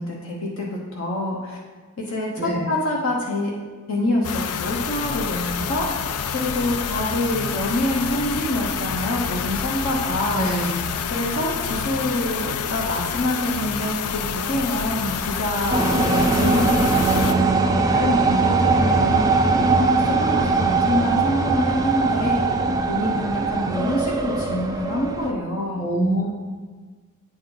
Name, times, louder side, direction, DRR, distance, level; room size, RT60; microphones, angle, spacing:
voice 1, 0.0-1.6 2.0-3.5 3.9-6.1 6.3-10.5 11.1-19.2 19.6-25.8, left 1 dB, 65° left, -3 dB, 1.0 m, -26 dB
voice 2, 2.4-2.7 10.3-10.8 25.8-26.3, right 1 dB, 35° left, -2 dB, 1.3 m, -24 dB
sound 1, 4.2-17.3, left 7 dB, 80° left, 0.4 m, -28 dB
sound 2, 15.7-25.3, right 3 dB, 15° right, 0.4 m, -20 dB
8.8 x 4.3 x 3.9 m, 1.4 s
head